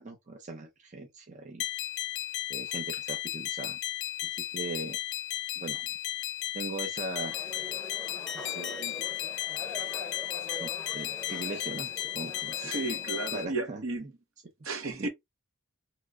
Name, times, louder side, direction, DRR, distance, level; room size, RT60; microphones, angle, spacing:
voice 1, 0.0-1.6 2.5-3.8 4.5-5.0 5.6-5.9 6.5-7.5 8.4-9.1 10.6-12.7 13.3-13.8 15.0-15.1, right 3 dB, 35° right, 0.6 m, -40 dB
sound 1, 1.6-13.4, left 13 dB, 50° left, 0.3 m, -35 dB
sound 2, 7.1-13.4, left 2 dB, 5° left, 0.9 m, -44 dB
voice 2, 12.6-14.1 14.6-15.1, right 3 dB, 70° right, 0.9 m, -33 dB
3.0 x 2.1 x 3.5 m
head